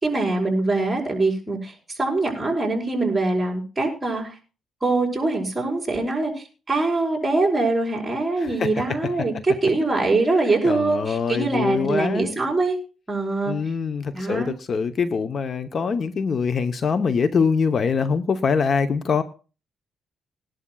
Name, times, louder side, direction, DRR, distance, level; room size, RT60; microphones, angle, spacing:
voice 1, 0.0-4.3 4.8-12.8 13.1-13.5 14.1-14.5, right 3 dB, 20° right, 0 dB, 5.1 m, -23 dB
voice 2, 8.4-8.7 10.6-12.3 13.5-19.2, left 5 dB, 50° left, 10 dB, 0.8 m, -23 dB
21.0 x 11.5 x 2.3 m, 0.34 s
cardioid pair, 90°, 0 cm